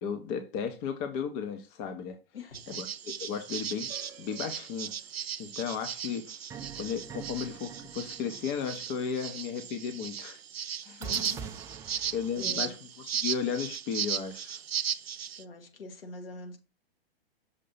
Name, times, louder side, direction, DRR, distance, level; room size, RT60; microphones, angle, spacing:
voice 1, 0.0-2.2 2.7-3.9 4.2-4.9 5.4-6.3 6.8-10.4 10.8-11.0 12.1-12.8 13.0-14.6, left 7 dB, 30° left, 0.8 m, -34 dB
voice 2, 2.3-2.8 11.0-11.5 11.8-12.8 14.8-15.0 15.4-16.6, left 3 dB, 70° left, 1.7 m, -45 dB
sound 1, 2.5-15.4, right 8 dB, 80° right, 0.5 m, -36 dB
sound 2, 3.9-5.0 6.5-9.2 11.0-12.7, right 7 dB, 10° right, 0.4 m, -45 dB
6.6 x 2.8 x 5.5 m
figure-of-eight pair, 110°, 30 cm